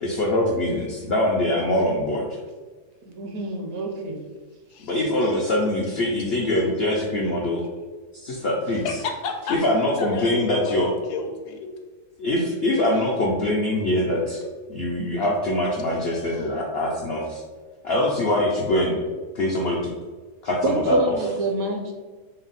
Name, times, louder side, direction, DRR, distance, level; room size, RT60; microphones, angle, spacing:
voice 1, 0.0-2.4 4.8-7.6 8.2-9.0 9.5-10.9 12.2-14.4 14.7-17.4 17.8-19.0 19.3-19.8 20.4-21.0, left 1 dB, 70° left, -2 dB, 0.5 m, -23 dB
voice 2, 3.0-4.2 20.6-21.9, right 1 dB, 70° right, 2 dB, 1.0 m, -26 dB
voice 3, 4.7-5.0 8.8-9.6 10.0-11.6 16.0-16.5, left 4 dB, 85° left, 3 dB, 1.2 m, -32 dB
4.2 x 2.0 x 3.8 m, 1.4 s
omnidirectional pair, 1.7 m